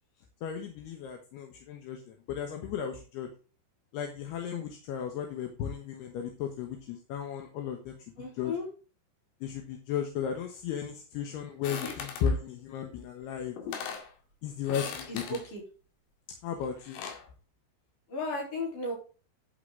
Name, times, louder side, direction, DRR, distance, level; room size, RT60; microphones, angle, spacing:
voice 1, 0.4-3.3 3.9-8.0 8.4-8.6 9.4-13.6 14.4-15.4 16.4-17.0, left 7 dB, 70° left, 4 dB, 2.8 m, -35 dB
voice 2, 8.2-8.7 11.8-11.9 15.1-15.6 18.1-18.9, left 2 dB, 40° left, -1 dB, 5.2 m, -35 dB
sound 1, 11.6-12.3 13.2-13.3 13.6-14.1 14.6-15.5 16.6-17.3, left 7 dB, 85° left, 4.6 m, -39 dB
11.5 x 6.7 x 3.9 m, 0.36 s
omnidirectional pair, 5.8 m